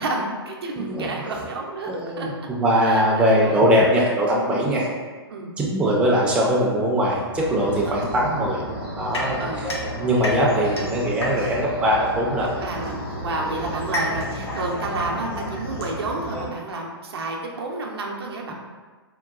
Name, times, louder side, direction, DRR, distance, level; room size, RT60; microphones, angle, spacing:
voice 1, 0.0-1.9 2.2-2.3 2.9-3.6 4.5-4.7 5.3-5.5 7.9-8.2 9.4-9.7 12.6-18.5, right 2 dB, 70° right, -1 dB, 0.6 m, -30 dB
voice 2, 0.8-1.1 1.9-2.3 2.6-4.9 5.6-8.6 9.0-9.7 10.0-12.5 15.2-15.5, equal, 10° right, -4 dB, 0.4 m, -21 dB
sound 1, 7.3-16.4, equal, 60° left, 1.2 m, -33 dB
sound 2, 9.1-11.7 12.8-16.1, left 1 dB, 80° left, 0.6 m, -33 dB
3.7 x 2.2 x 2.3 m, 1.4 s
figure-of-eight pair, 120°, 14 cm